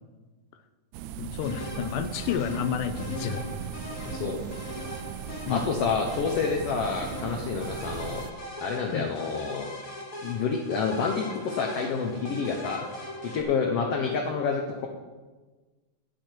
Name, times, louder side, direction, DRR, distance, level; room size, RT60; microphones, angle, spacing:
sound 1, 0.9-8.3, right 10 dB, 80° right, 1.7 m, -38 dB
voice 1, 1.2-3.5 5.5-5.7 8.9-9.1, left 8 dB, 85° left, 10 dB, 2.3 m, -30 dB
sound 2, 1.4-13.4, left 1 dB, 40° left, 1.3 m, -40 dB
voice 2, 4.0-4.4 5.5-8.2 8.6-9.7 10.2-12.8 13.2-14.9, left 5 dB, 65° left, 1 dB, 1.7 m, -28 dB
14.5 x 9.8 x 4.6 m, 1.3 s
omnidirectional pair, 3.7 m